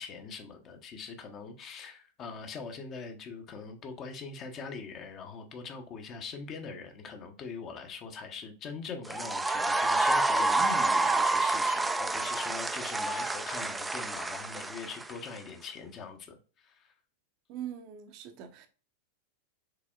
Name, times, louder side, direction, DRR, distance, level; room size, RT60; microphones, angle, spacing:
voice 1, 0.0-16.9, left 5 dB, 30° left, 0.8 m, -42 dB
sound 1, 9.0-15.4, right 2 dB, 10° right, 0.3 m, -28 dB
voice 2, 17.5-18.7, right 10 dB, 40° right, 0.6 m, -42 dB
4.9 x 3.4 x 2.3 m
figure-of-eight pair, 90°, 0 cm